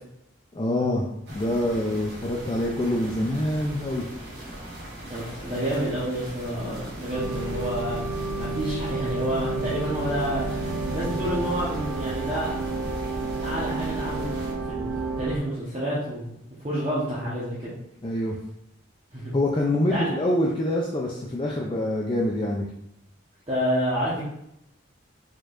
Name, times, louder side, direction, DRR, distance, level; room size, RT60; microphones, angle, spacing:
voice 1, 0.5-4.1 18.0-18.4 19.3-22.7, left 1 dB, 25° left, -2 dB, 0.4 m, -25 dB
sound 1, 1.3-14.5, right 1 dB, 55° right, 1.6 m, -40 dB
voice 2, 5.1-8.0 8.3-10.5 10.9-12.5 13.4-14.3 14.7-16.3 16.6-17.7 19.1-19.3 19.9-20.1 23.5-24.2, equal, 30° right, -9 dB, 1.0 m, -29 dB
sound 2, 7.1-15.4, right 3 dB, 80° right, 0.5 m, -30 dB
4.6 x 4.5 x 2.5 m, 0.79 s
head